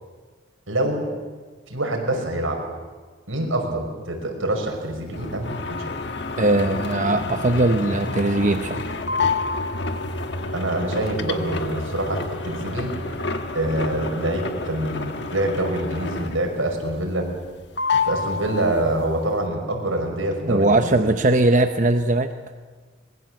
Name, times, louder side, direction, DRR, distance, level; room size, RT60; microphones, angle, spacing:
voice 1, 0.7-1.0 1.7-2.6 3.3-5.9 10.5-12.9 13.5-17.3 17.9-21.1, right 1 dB, 85° right, 2 dB, 5.5 m, -25 dB
sound 1, 5.1-16.6 16.9-17.5 17.8-19.1, left 3 dB, 55° left, 1.5 m, -29 dB
voice 2, 6.4-8.8 20.5-22.3, right 2 dB, 40° right, 7 dB, 0.8 m, -20 dB
24.5 x 21.5 x 7.6 m, 1.5 s
head